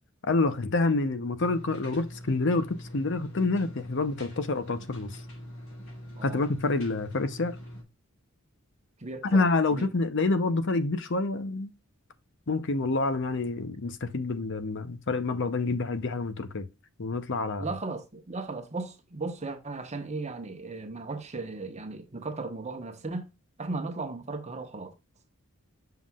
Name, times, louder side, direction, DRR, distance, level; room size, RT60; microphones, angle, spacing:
voice 1, 0.2-5.1 6.2-7.6 9.3-11.7 12.5-16.6 17.0-17.7, left 3 dB, 60° left, 0.8 m, -27 dB
sound 1, 1.4-7.8, equal, 85° left, 3.2 m, -43 dB
voice 2, 9.0-9.9 17.6-23.3 23.6-24.9, right 3 dB, 30° right, 1.0 m, -36 dB
7.5 x 5.7 x 2.4 m
head